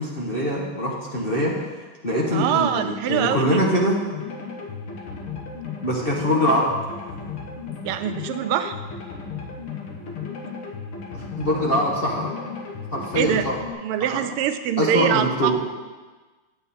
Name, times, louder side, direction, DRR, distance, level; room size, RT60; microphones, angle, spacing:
voice 1, 0.0-1.5 2.0-4.0 5.8-6.7 11.4-12.3 12.9-13.5 14.8-15.6, equal, 35° left, -4 dB, 1.1 m, -23 dB
voice 2, 2.3-3.6 7.8-8.8 13.2-13.5 13.8-15.6, right 10 dB, 90° right, 9 dB, 1.6 m, -24 dB
sound 1, 4.1-13.7, left 5 dB, 85° left, 2.2 m, -35 dB
9.7 x 8.1 x 4.2 m, 1.3 s
omnidirectional pair, 2.4 m